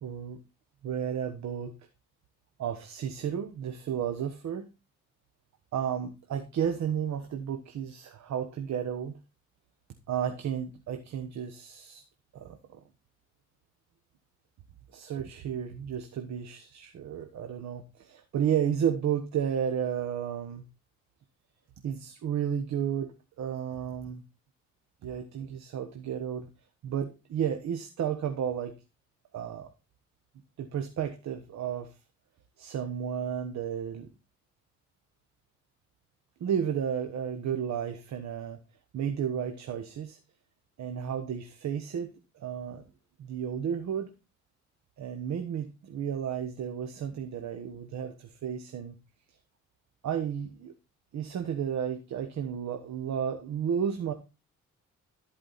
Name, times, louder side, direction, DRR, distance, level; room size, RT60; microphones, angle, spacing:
voice 1, 0.0-0.4 0.8-1.7 2.6-4.7 5.7-9.1 10.1-12.0 12.3-12.8 14.9-20.6 21.8-24.2 25.0-26.5 26.8-28.8 29.3-29.7 30.6-31.9 32.6-34.1 36.4-38.6 38.9-40.2 40.8-42.8 43.2-44.1 45.0-48.9 50.0-50.7 51.1-54.1, right 8 dB, 65° right, 6 dB, 1.2 m, -32 dB
14.0 x 5.0 x 4.1 m, 0.29 s
cardioid pair, 90°, 30 cm